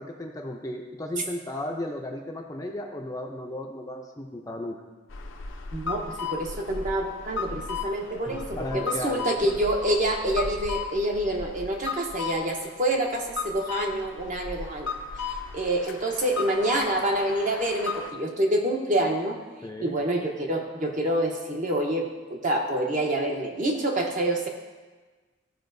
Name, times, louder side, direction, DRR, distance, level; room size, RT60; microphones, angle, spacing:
voice 1, 0.0-4.7 8.3-9.3 19.6-19.9, left 1 dB, 15° left, 1 dB, 0.5 m, -35 dB
sound 1, 5.1-18.1, left 5 dB, 65° left, 0.6 m, -35 dB
voice 2, 5.7-14.9 15.5-19.4 19.8-24.5, right 1 dB, 40° right, 1 dB, 0.9 m, -27 dB
14.0 x 5.0 x 2.6 m, 1.3 s
head